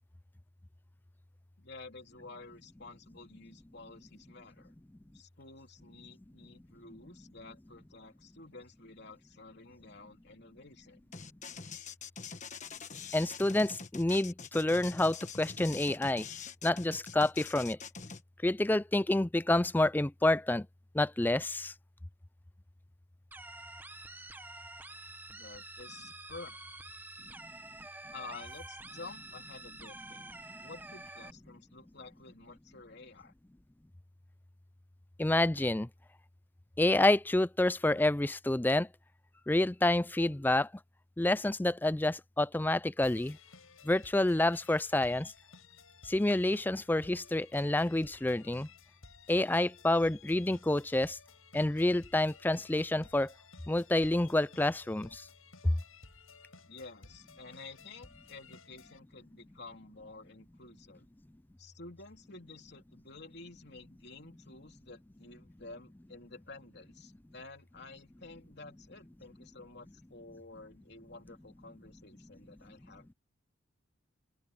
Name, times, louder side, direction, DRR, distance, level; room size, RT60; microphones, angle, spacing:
voice 1, 1.6-4.7 5.1-11.1 25.3-26.6 28.1-33.3 56.7-61.1 61.6-73.1, left 3 dB, 55° left, 3.0 m, -51 dB
sound 1, 11.1-18.2, left 5 dB, 35° left, 1.3 m, -45 dB
voice 2, 13.1-16.3 16.6-17.8 18.4-20.7 20.9-21.7 35.2-35.9 36.8-38.9 39.5-40.7 41.2-43.4 43.8-45.3 46.1-48.7 49.3-51.2 51.5-53.3 53.7-55.3, left 1 dB, 10° left, 0.4 m, -28 dB
sound 2, 23.3-31.3, right 2 dB, 10° right, 1.2 m, -48 dB
sound 3, 43.0-59.0, left 4 dB, 90° left, 7.6 m, -56 dB
head